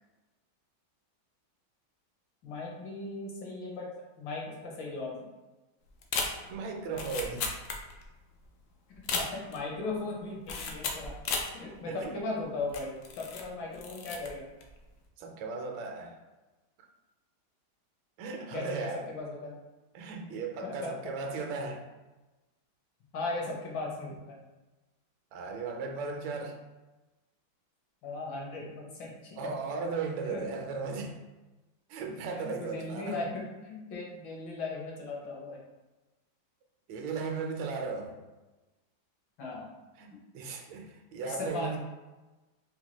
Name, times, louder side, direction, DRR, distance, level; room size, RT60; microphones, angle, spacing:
voice 1, 2.4-3.9 4.2-5.2 9.1-11.1 11.5-14.5 18.5-19.5 20.6-20.9 23.1-24.4 28.0-29.4 30.2-30.4 32.3-35.6 39.4-39.7 41.2-41.8, left 3 dB, 70° left, -2 dB, 1.5 m, -37 dB
sound 1, 6.0-8.2 8.4-8.5 8.9-9.7 10.5-11.6 12.0-12.1 12.7-13.5 13.7-14.3 14.6-14.9, left 4 dB, 90° left, 0.8 m, -35 dB
voice 2, 6.5-7.5 11.9-12.2 15.2-16.2 16.8-16.9 18.2-19.0 19.9-21.8 25.3-26.6 29.4-31.1 31.9-33.2 36.9-38.1 40.0-41.8, right 4 dB, 75° right, 2 dB, 1.3 m, -36 dB
4.3 x 2.2 x 2.9 m, 1.1 s
omnidirectional pair, 2.2 m